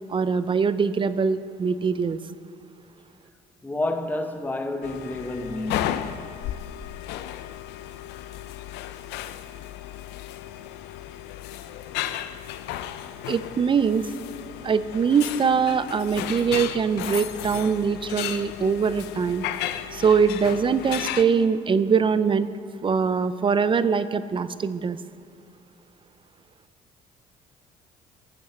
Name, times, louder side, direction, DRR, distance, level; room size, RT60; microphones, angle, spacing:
voice 1, 0.1-2.2 13.3-14.1 14.6-19.4 19.9-22.5 22.8-25.0, right 6 dB, 30° right, 0.5 m, -22 dB
voice 2, 3.6-6.2, left 2 dB, 10° left, 1.1 m, -30 dB
sound 1, 4.8-21.2, left 12 dB, 85° left, 0.6 m, -34 dB
14.0 x 7.1 x 7.9 m
cardioid pair, 110°, 17 cm